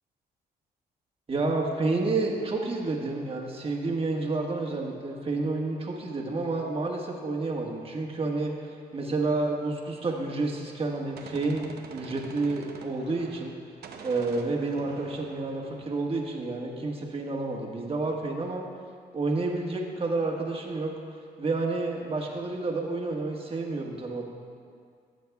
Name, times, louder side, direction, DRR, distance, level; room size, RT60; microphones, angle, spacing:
voice 1, 1.3-13.5 14.0-18.6 19.1-20.9 21.4-24.2, right 3 dB, 35° right, -1 dB, 1.5 m, -30 dB
Gunshot gunfire, 10.7-13.6 13.8-16.6, right 5 dB, 70° right, 0.9 m, -46 dB
16.5 x 7.6 x 2.3 m, 2.2 s
cardioid pair, 80°, 17 cm